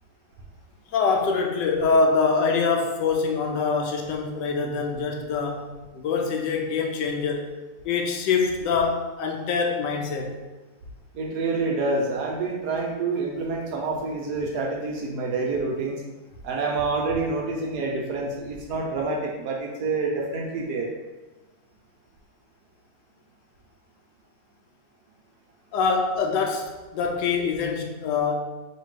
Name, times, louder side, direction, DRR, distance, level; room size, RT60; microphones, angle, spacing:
voice 1, 0.9-5.7 5.9-7.5 7.8-10.4 25.7-28.3, left 4 dB, 80° left, 2 dB, 1.3 m, -24 dB
voice 2, 11.1-16.0 16.4-20.9, right 3 dB, 70° right, 0 dB, 1.1 m, -27 dB
3.1 x 2.9 x 4.6 m, 1.1 s
omnidirectional pair, 1.9 m